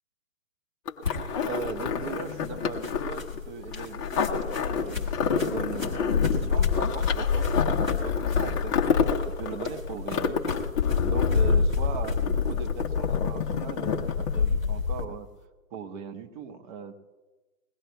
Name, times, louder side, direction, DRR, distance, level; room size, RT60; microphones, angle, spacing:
sound 1, 0.9-14.6 15.0-15.1, left 6 dB, 20° left, 0.8 m, -29 dB
sound 2, 1.0-15.0, left 5 dB, 5° right, 0.4 m, -28 dB
voice 1, 1.4-8.8 9.2-10.6 11.0-15.3 15.7-16.9, right 6 dB, 30° right, 6 dB, 1.1 m, -39 dB
21.5 x 18.5 x 2.3 m, 1.2 s
hypercardioid pair, 140°, 48 cm